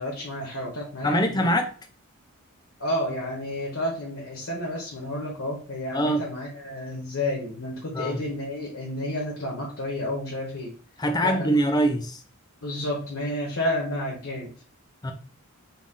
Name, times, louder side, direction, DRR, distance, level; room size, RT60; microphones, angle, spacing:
voice 1, 0.0-1.5 2.8-10.7 11.2-11.6 12.6-14.5, left 1 dB, 65° left, 1.0 m, -31 dB
voice 2, 1.0-1.7 5.9-6.2 7.9-8.2 11.0-12.2 15.0-15.1, right 1 dB, 20° left, 0.5 m, -23 dB
4.1 x 2.4 x 3.7 m
head